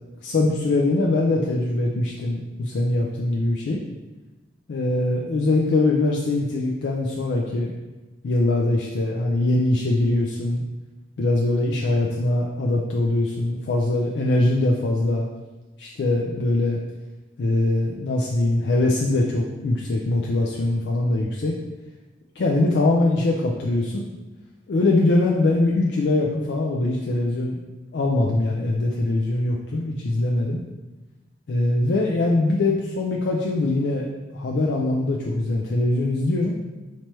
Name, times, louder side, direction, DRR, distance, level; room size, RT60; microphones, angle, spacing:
voice 1, 0.2-3.8 4.7-7.7 8.2-10.7 11.2-15.3 15.8-16.8 17.4-21.5 22.4-24.1 24.7-27.6 27.9-30.6 31.5-34.1 34.3-36.6, left 2 dB, 65° left, -2 dB, 0.4 m, -22 dB
3.0 x 2.9 x 4.5 m, 1.1 s
head